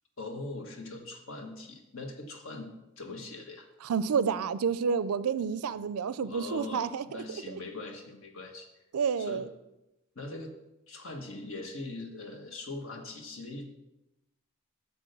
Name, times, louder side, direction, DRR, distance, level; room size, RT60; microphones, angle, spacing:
voice 1, 0.2-3.7 6.2-8.7 9.2-9.5 10.1-10.5 10.9-13.7, left 2 dB, 65° left, 3 dB, 1.4 m, -41 dB
voice 2, 3.8-7.2 7.5-7.6 8.9-9.4, right 6 dB, 85° right, 15 dB, 0.4 m, -29 dB
7.0 x 6.2 x 6.7 m, 0.94 s
head